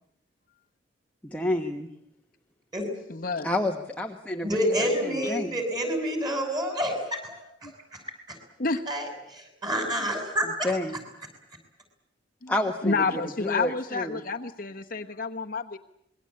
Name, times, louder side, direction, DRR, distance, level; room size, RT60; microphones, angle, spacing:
voice 1, 1.2-1.9 3.4-5.5 10.6-10.9 12.5-14.2, left 1 dB, 5° left, 2 dB, 1.2 m, -30 dB
voice 2, 3.1-3.5 7.6-7.7 8.6-8.9 12.4-12.5 12.8-15.8, left 4 dB, 45° left, 4 dB, 1.1 m, -29 dB
voice 3, 4.4-8.0 8.3-8.4 8.9-10.7, equal, 20° right, 5 dB, 6.6 m, -29 dB
26.0 x 22.0 x 8.7 m, 0.74 s
head